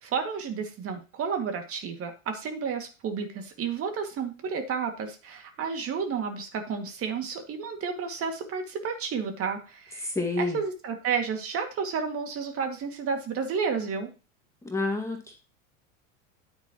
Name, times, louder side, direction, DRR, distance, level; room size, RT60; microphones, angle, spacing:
voice 1, 0.0-14.1, right 6 dB, 35° right, 4 dB, 2.2 m, -31 dB
voice 2, 10.0-10.6 14.6-15.4, left 2 dB, 5° left, 2 dB, 2.0 m, -29 dB
9.9 x 9.0 x 3.0 m, 0.33 s
hypercardioid pair, 110°, 39 cm